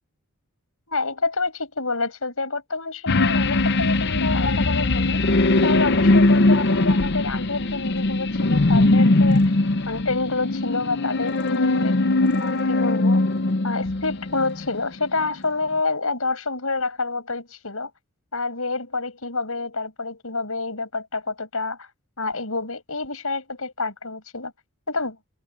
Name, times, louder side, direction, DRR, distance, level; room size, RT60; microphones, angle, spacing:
voice 1, 0.9-5.2 5.6-9.5 9.9-12.0 12.4-13.2 13.6-17.9 18.3-21.9 22.2-24.5 24.9-25.2, left 3 dB, 70° left, 6.4 m, -28 dB
sound 1, 3.1-14.9 15.2-15.3, left 2 dB, 50° left, 0.8 m, -20 dB
head